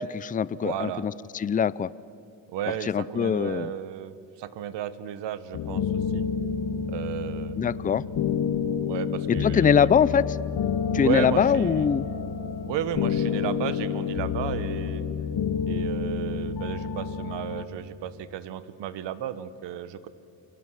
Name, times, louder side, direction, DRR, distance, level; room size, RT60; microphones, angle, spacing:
voice 1, 0.0-1.9 2.9-3.7 7.6-8.0 9.3-10.4 10.9-12.1, left 7 dB, 20° left, 19 dB, 0.5 m, -23 dB
voice 2, 0.6-1.0 2.5-6.2 6.9-7.5 8.8-9.9 10.9-11.9 12.7-15.0 15.7-20.1, right 10 dB, 70° right, 14 dB, 1.4 m, -33 dB
sound 1, 5.5-17.7, left 7 dB, 55° left, 1.6 m, -29 dB
29.0 x 23.5 x 6.5 m, 2.8 s
cardioid pair, 95°, 44 cm